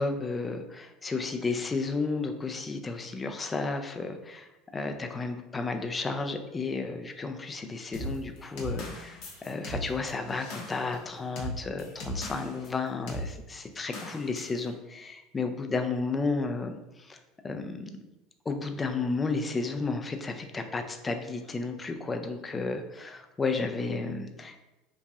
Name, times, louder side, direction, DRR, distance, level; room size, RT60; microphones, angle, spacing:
voice 1, 0.0-18.0 18.5-24.6, left 3 dB, 20° left, 6 dB, 0.3 m, -33 dB
sound 1, 7.9-12.7 13.1-13.3 13.9-14.6, equal, 60° left, 0.7 m, -38 dB
3.0 x 2.5 x 2.3 m, 1.0 s
hypercardioid pair, 75°, 0 cm